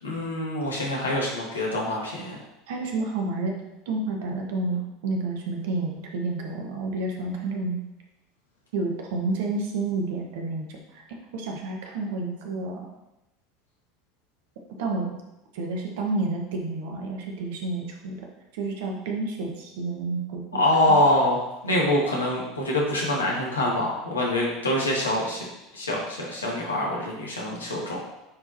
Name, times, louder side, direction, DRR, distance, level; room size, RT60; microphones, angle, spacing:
voice 1, 0.0-2.4 20.5-25.5 25.7-28.0, left 1 dB, 80° left, -3 dB, 1.8 m, -25 dB
voice 2, 2.7-3.5 3.8-7.8 8.7-12.9 14.8-15.1 15.5-18.2 18.5-20.6 20.9-21.0, right 3 dB, 65° right, 1 dB, 1.4 m, -30 dB
9.5 x 4.7 x 3.0 m, 0.93 s
figure-of-eight pair, 75°, 0 cm